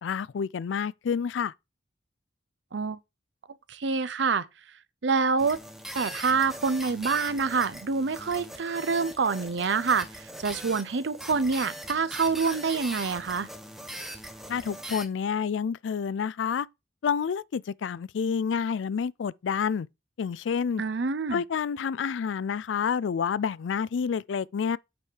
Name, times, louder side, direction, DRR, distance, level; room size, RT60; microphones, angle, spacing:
voice 1, 0.0-1.5 14.5-16.7 17.0-19.9 20.2-20.8 21.3-24.8, left 6 dB, 80° left, 0.4 m, -29 dB
voice 2, 3.7-4.5 5.0-5.6 5.9-13.5 20.8-21.4, right 4 dB, 70° right, 0.6 m, -26 dB
sound 1, 5.4-15.1, equal, ahead, 1.2 m, -41 dB
8.3 x 4.9 x 4.6 m
head